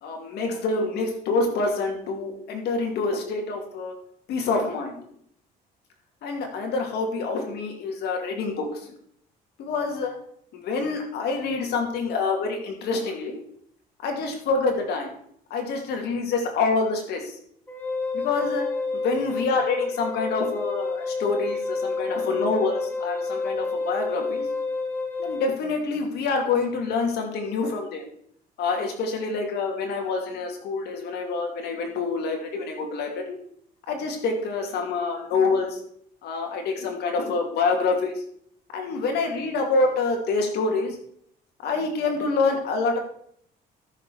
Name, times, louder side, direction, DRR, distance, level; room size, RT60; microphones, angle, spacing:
voice 1, 0.0-3.9 4.3-5.0 6.2-8.9 9.6-10.1 10.5-13.4 14.0-15.1 15.5-17.4 18.1-18.6 19.0-24.5 25.2-28.0 28.6-33.4 33.9-35.8 36.2-38.2 38.7-41.0 41.6-43.0, left 3 dB, 75° left, 3 dB, 2.6 m, -26 dB
Wind instrument woodwind instrument, 17.7-25.5, left 3 dB, 10° left, 1.9 m, -29 dB
13.0 x 6.6 x 4.2 m, 0.66 s
cardioid pair, 110°, 17 cm